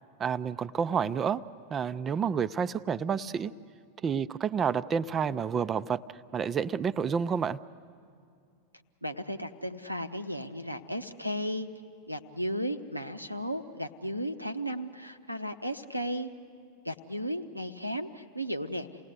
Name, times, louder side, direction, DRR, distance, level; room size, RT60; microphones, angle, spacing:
voice 1, 0.2-1.4 1.7-3.5 4.0-6.0 6.3-7.6, right 7 dB, 25° right, 15 dB, 0.5 m, -29 dB
voice 2, 9.0-11.7 12.1-16.3 16.8-18.9, equal, 90° right, 9 dB, 0.9 m, -35 dB
28.5 x 18.5 x 8.1 m, 2.3 s
figure-of-eight pair, 90°, 0 cm